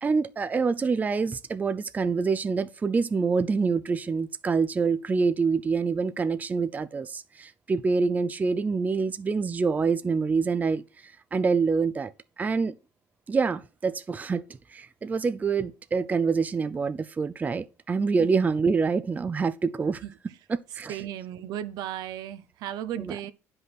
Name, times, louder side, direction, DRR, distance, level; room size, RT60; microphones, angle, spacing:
voice 1, 0.0-10.8 11.3-12.1 12.4-12.7 13.3-14.4 14.7-20.0 20.5-20.9, right 4 dB, 25° right, 0.5 m, -26 dB
voice 2, 20.0-20.4 20.7-23.3, right 11 dB, 75° right, 0.9 m, -35 dB
9.7 x 5.5 x 5.9 m
cardioid pair, 105°, 7 cm